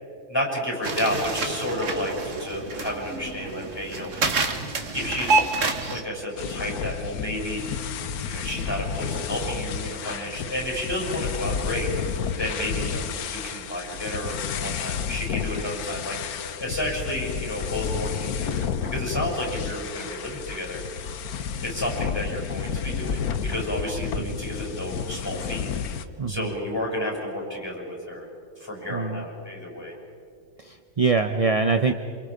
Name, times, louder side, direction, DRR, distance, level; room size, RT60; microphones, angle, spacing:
voice 1, 0.3-4.3 4.6-5.5 5.9-7.6 8.3-20.8 21.6-25.7 26.3-28.3 28.6-29.9, left 1 dB, 15° left, -1 dB, 7.0 m, -31 dB
sound 1, 0.8-6.0, right 3 dB, 55° right, 2.0 m, -27 dB
sound 2, 6.4-26.1, left 7 dB, 80° left, 1.4 m, -31 dB
voice 2, 26.2-26.5 28.9-29.2 30.6-31.9, right 4 dB, 40° right, 7 dB, 0.5 m, -24 dB
28.5 x 27.5 x 5.1 m, 2.5 s
omnidirectional pair, 1.6 m